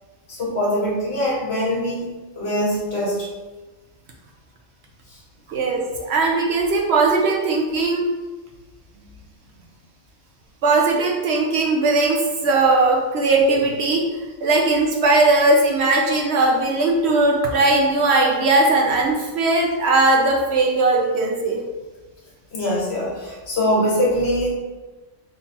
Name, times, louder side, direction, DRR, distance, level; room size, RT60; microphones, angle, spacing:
voice 1, 0.3-2.1 2.4-3.3 5.1-5.2 22.5-24.5, equal, 55° left, -5 dB, 1.3 m, -22 dB
voice 2, 5.5-8.1 10.6-14.0 14.4-21.6, right 2 dB, 65° right, 0 dB, 0.8 m, -19 dB
3.7 x 2.3 x 4.0 m, 1.2 s
omnidirectional pair, 1.3 m